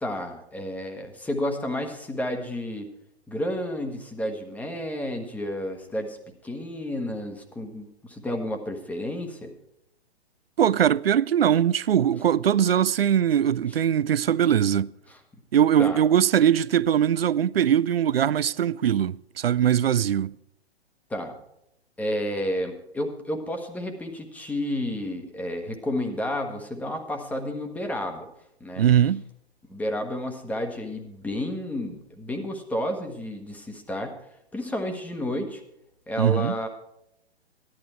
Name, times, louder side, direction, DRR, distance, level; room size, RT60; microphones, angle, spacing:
voice 1, 0.0-2.9 3.3-6.2 6.4-9.5 13.7-13.8 15.1-15.2 15.8-16.0 21.1-21.4 22.0-28.3 28.6-28.8 29.7-34.2 34.5-35.6 36.1-36.7, left 1 dB, 5° left, 1.2 m, -31 dB
voice 2, 10.6-14.9 15.5-20.4 28.8-29.2 36.2-36.6, right 9 dB, 65° right, 0.5 m, -21 dB
15.0 x 11.5 x 4.5 m
figure-of-eight pair, 120°, 32 cm